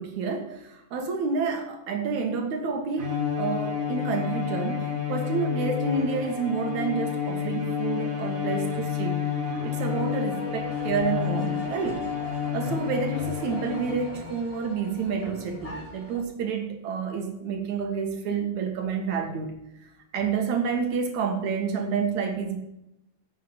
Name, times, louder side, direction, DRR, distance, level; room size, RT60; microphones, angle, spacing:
voice 1, 0.0-9.2 9.6-12.0 12.5-19.6 20.1-22.6, right 5 dB, 65° right, 4 dB, 2.7 m, -29 dB
Bowed string instrument, 3.0-14.2, left 7 dB, 40° right, 1.2 m, -30 dB
sound 1, 9.5-16.2, left 3 dB, 10° left, 1.9 m, -41 dB
9.1 x 6.6 x 7.8 m, 0.86 s
omnidirectional pair, 3.7 m